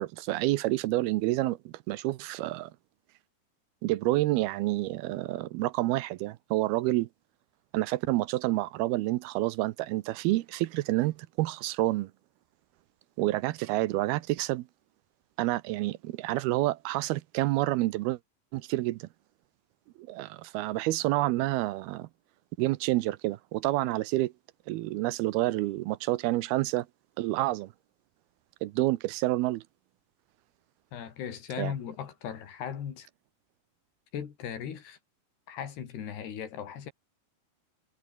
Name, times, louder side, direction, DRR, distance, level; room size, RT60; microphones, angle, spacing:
voice 1, 0.0-2.7 3.8-7.1 7.7-12.1 13.2-14.7 15.4-18.2 18.5-19.1 20.0-22.1 22.6-24.3 24.7-26.9 27.2-27.7 28.6-29.6 31.6-31.7, right 18 dB, 80° right, 2.6 m, -28 dB
voice 2, 30.9-33.1 34.1-35.0 35.5-36.9, left 8 dB, 85° left, 5.1 m, -37 dB
omnidirectional pair, 4.6 m